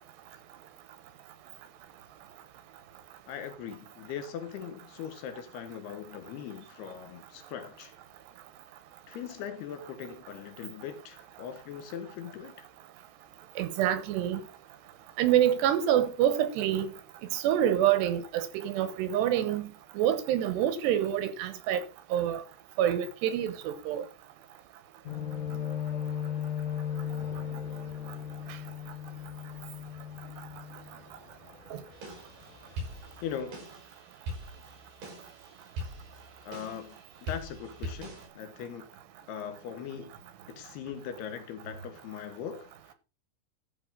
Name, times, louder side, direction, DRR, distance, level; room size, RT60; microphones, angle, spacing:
voice 1, 3.3-7.9 9.1-12.7 33.2-33.6 36.4-38.9 39.3-40.1 40.5-42.9, left 8 dB, 70° left, 3.3 m, -40 dB
voice 2, 13.6-14.4 15.2-16.9 17.3-19.7 20.0-21.8 22.1-22.4 22.8-24.1 31.7-31.8, right 11 dB, 80° right, 3.2 m, -26 dB
sound 1, 25.1-31.6 31.9-32.2 32.6-33.1 33.5-33.6, left 9 dB, 55° left, 2.7 m, -36 dB
sound 2, 31.9-38.3, equal, 50° right, 6.3 m, -42 dB
13.0 x 5.3 x 5.6 m
omnidirectional pair, 5.0 m